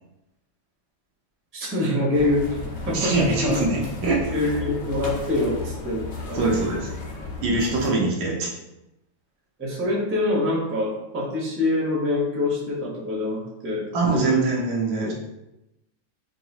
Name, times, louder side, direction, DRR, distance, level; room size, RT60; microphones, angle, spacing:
voice 1, 1.5-2.6 2.9-3.2 3.5-3.6 4.3-6.6 9.6-14.4 15.0-15.1, left 2 dB, 15° right, -6 dB, 0.4 m, -25 dB
sound 1, 2.1-7.9, left 3 dB, 85° left, 0.6 m, -34 dB
voice 2, 2.9-4.5 6.3-6.9 7.4-8.5 13.9-15.1, right 3 dB, 70° right, -2 dB, 1.3 m, -23 dB
4.8 x 2.4 x 2.8 m, 0.91 s
omnidirectional pair, 2.2 m